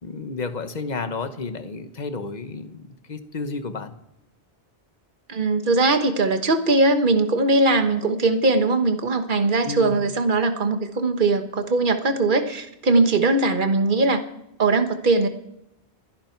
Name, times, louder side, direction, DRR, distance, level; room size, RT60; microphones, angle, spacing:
voice 1, 0.0-3.9 9.6-9.9, left 4 dB, 45° left, 9 dB, 1.3 m, -31 dB
voice 2, 5.3-14.2 14.6-15.3, right 3 dB, 55° right, 7 dB, 1.5 m, -20 dB
28.5 x 11.0 x 4.6 m, 0.87 s
omnidirectional pair, 1.1 m